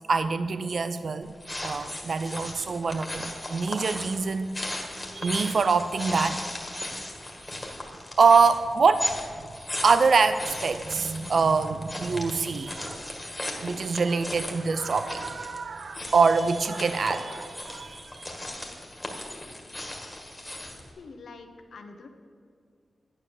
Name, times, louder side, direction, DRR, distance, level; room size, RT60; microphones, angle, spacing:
voice 1, 0.1-1.3 1.6-4.5 5.1-6.4 8.2-9.1 9.8-13.0 13.6-18.3, right 5 dB, 55° right, 11 dB, 0.4 m, -24 dB
sound 1, 1.2-20.9, left 1 dB, 10° left, 1.8 m, -37 dB
voice 2, 21.0-22.1, left 4 dB, 75° left, 6 dB, 1.2 m, -45 dB
11.0 x 9.7 x 7.1 m, 2.2 s
wide cardioid pair, 155°, 0 cm